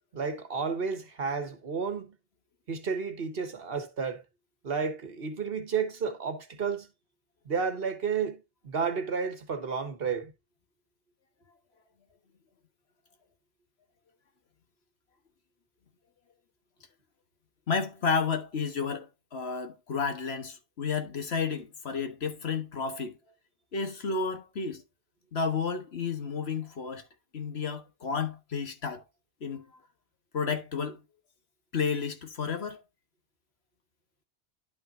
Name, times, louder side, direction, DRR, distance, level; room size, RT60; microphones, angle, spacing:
voice 1, 0.1-2.1 2.7-4.2 4.6-6.9 7.4-10.3, right 5 dB, 65° right, 1.5 m, -32 dB
voice 2, 17.7-23.2 23.7-24.8 25.3-27.0 27.3-29.0 29.4-29.7 30.3-31.0 31.7-32.8, left 5 dB, 80° left, 1.5 m, -31 dB
11.0 x 5.5 x 2.6 m
omnidirectional pair, 1.1 m